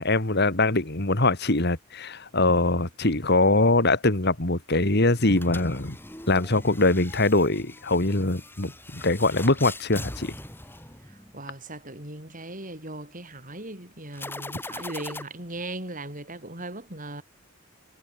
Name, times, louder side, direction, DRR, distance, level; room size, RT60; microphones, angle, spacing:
voice 1, 0.0-6.0 6.3-10.3, left 2 dB, 50° left, 2.6 m, -23 dB
sound 1, 5.3-11.5 14.1-15.2, left 2 dB, 10° left, 6.6 m, -41 dB
voice 2, 11.0-17.2, right 2 dB, 40° right, 6.3 m, -38 dB
head